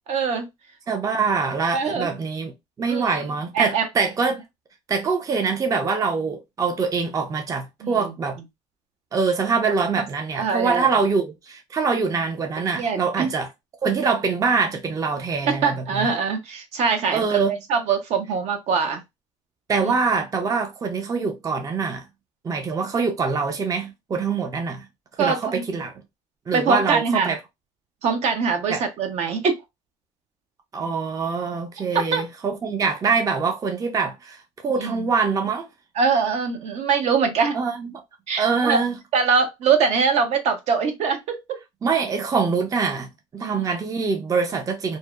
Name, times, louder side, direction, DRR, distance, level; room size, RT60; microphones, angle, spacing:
voice 1, 0.1-0.5 1.7-2.1 2.9-3.2 3.5-3.9 7.8-8.1 10.3-10.9 12.7-13.3 15.4-17.4 17.7-19.0 19.8-19.9 25.2-25.6 26.5-27.3 28.0-29.6 32.1-32.2 34.8-35.1 35.9-37.6 38.3-38.8 39.1-41.6 43.4-43.6, right 5 dB, 60° right, 0.7 m, -23 dB
voice 2, 0.9-2.5 2.8-4.4 4.9-8.4 9.1-13.5 13.8-16.1 17.1-17.6 19.7-22.0 22.4-24.9 25.2-25.9 26.5-27.4 28.7-28.8 30.7-35.7 37.5-38.0 38.4-38.9 41.8-45.0, right 5 dB, 30° right, 0.5 m, -24 dB
2.7 x 2.0 x 2.3 m
supercardioid pair, 90°, 13 cm